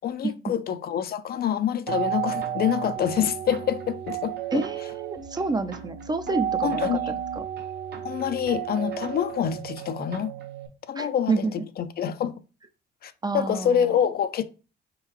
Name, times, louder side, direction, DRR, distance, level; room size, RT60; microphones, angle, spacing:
voice 1, 0.0-4.6 6.6-7.2 8.0-10.3 10.9-11.5 11.8-12.3 13.0-14.4, left 9 dB, 55° left, 0.5 m, -26 dB
sound 1, 1.9-10.7, right 10 dB, 55° right, 1.0 m, -32 dB
voice 2, 4.5-7.0 11.0-11.6 13.2-13.9, right 3 dB, 20° right, 0.5 m, -28 dB
4.3 x 3.8 x 2.9 m
cardioid pair, 100°, 20 cm